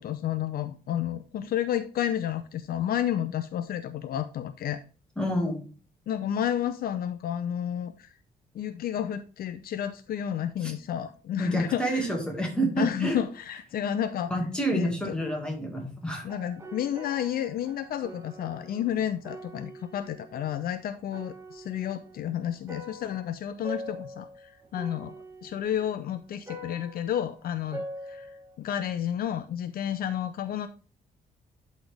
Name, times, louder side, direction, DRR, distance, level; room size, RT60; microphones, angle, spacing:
voice 1, 0.0-4.8 6.1-8.1 8.5-12.1 12.8-14.3 14.7-15.2 16.2-25.1 25.4-28.3 28.6-30.7, left 10 dB, 65° left, 11 dB, 0.6 m, -31 dB
voice 2, 5.2-5.6 10.6-10.7 11.4-13.2 14.3-16.3, right 1 dB, 5° left, 1 dB, 2.0 m, -28 dB
sound 1, 16.2-20.6 21.0-28.6, right 1 dB, 15° right, 1.4 m, -44 dB
11.5 x 4.3 x 3.5 m, 0.36 s
cardioid pair, 170°, 16 cm